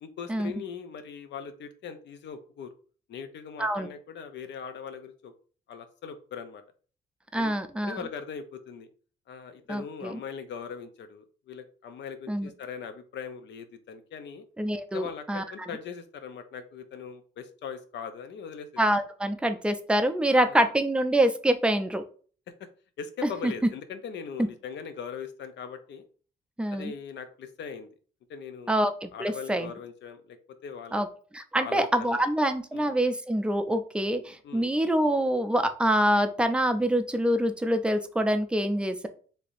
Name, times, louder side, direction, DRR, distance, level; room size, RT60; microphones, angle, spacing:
voice 1, 0.0-2.7 3.1-5.3 5.7-6.6 7.3-7.5 7.8-8.9 9.3-14.4 14.9-18.7 20.3-20.6 22.5-22.7 23.0-26.0 26.7-27.9 28.3-28.8 29.1-31.0 31.5-32.3 32.7-32.9 34.4-34.7, left 6 dB, 65° left, 9 dB, 0.6 m, -40 dB
voice 2, 7.3-8.0 9.7-10.2 12.3-12.5 14.6-15.4 18.8-22.0 23.2-23.5 26.6-26.9 28.7-29.7 30.9-31.1 31.3-39.1, right 1 dB, 5° right, 8 dB, 0.4 m, -25 dB
3.3 x 2.8 x 2.5 m, 0.41 s
cardioid pair, 90°, 20 cm